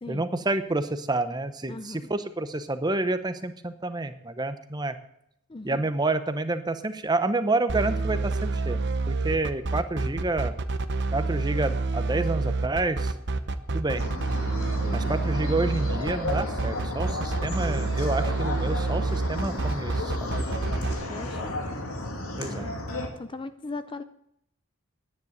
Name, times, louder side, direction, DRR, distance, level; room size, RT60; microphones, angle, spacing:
voice 1, 0.1-5.0 5.6-10.5 11.1-13.1 13.7-14.1 14.9-20.6 22.4-22.7, right 2 dB, 20° right, 10 dB, 0.8 m, -29 dB
voice 2, 1.7-2.0 5.5-5.8 14.8-15.2 21.1-21.5 22.4-22.8 23.2-24.0, left 2 dB, 25° left, 12 dB, 0.4 m, -38 dB
sound 1, 7.7-20.9, right 3 dB, 55° right, 0.8 m, -28 dB
sound 2, 13.9-23.1, left 1 dB, 90° left, 2.5 m, -33 dB
10.5 x 9.7 x 7.9 m, 0.75 s
head